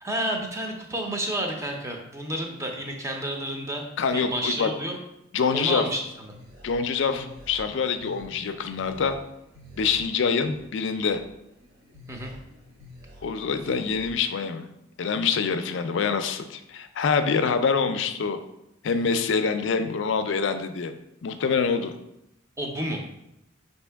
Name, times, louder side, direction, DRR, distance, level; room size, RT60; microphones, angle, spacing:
voice 1, 0.0-3.8 4.1-5.0 5.5-6.3 12.1-12.3 22.6-23.0, right 1 dB, 15° right, 1 dB, 0.6 m, -30 dB
voice 2, 4.0-4.7 5.3-5.8 6.6-9.2 9.8-11.2 13.2-14.6 15.0-18.4 18.8-20.9 21.2-21.9, left 5 dB, 65° left, 9 dB, 0.4 m, -25 dB
sound 1, 5.9-14.1, left 1 dB, 50° right, 1.1 m, -49 dB
5.3 x 2.8 x 3.4 m, 0.85 s
head